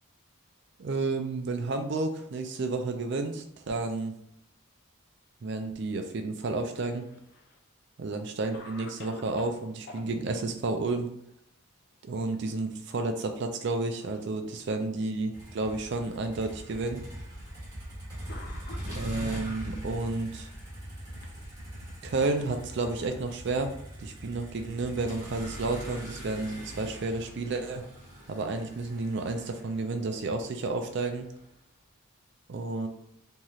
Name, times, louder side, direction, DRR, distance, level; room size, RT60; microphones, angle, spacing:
voice 1, 0.8-4.1 5.4-7.1 8.0-11.1 12.0-17.0 18.9-20.5 22.0-23.7 24.0-27.9 28.3-31.3 32.5-32.9, right 3 dB, 55° right, 5 dB, 0.4 m, -31 dB
Cough, 6.7-7.6 8.1-8.2 8.5-10.0 11.9-12.3 12.7-12.8 13.6-14.3 15.1-15.2 16.2-16.3 17.5-17.6 18.3-19.5 20.5-21.9, left 2 dB, 50° left, 0.4 m, -49 dB
Motor vehicle (road), 15.3-31.4, equal, 20° right, 1.0 m, -42 dB
3.0 x 2.7 x 2.4 m, 0.76 s
head